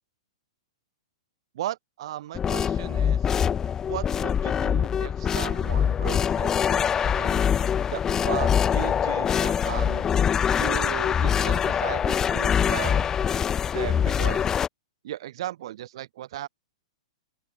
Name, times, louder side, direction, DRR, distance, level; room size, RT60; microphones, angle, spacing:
voice 1, 1.5-3.3 3.9-7.4 7.9-10.1 10.6-13.1 13.7-14.6 15.0-16.5, right 13 dB, 60° right, 4.0 m, -36 dB
sound 1, 2.3-14.7, left 8 dB, 15° left, 3.2 m, -24 dB
open air
hypercardioid pair, 150°, 3 cm